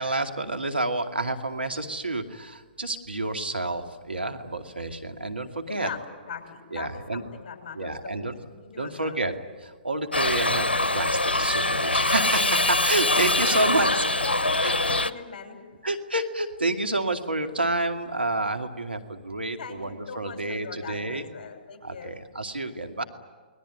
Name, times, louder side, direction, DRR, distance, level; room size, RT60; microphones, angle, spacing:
voice 1, 0.0-5.9 6.7-7.2 7.7-8.4 8.8-9.3 9.6-14.0 14.6-14.7 15.8-21.2 21.8-23.0, right 2 dB, 90° right, 5 dB, 2.4 m, -29 dB
voice 2, 5.7-9.2 13.2-15.6 19.6-22.1, left 6 dB, 45° left, 4 dB, 6.4 m, -40 dB
Shout / Livestock farm animals working animals, 10.1-15.1, left 2 dB, 85° left, 1.1 m, -24 dB
29.0 x 21.0 x 9.4 m, 1.4 s
figure-of-eight pair, 125°, 5 cm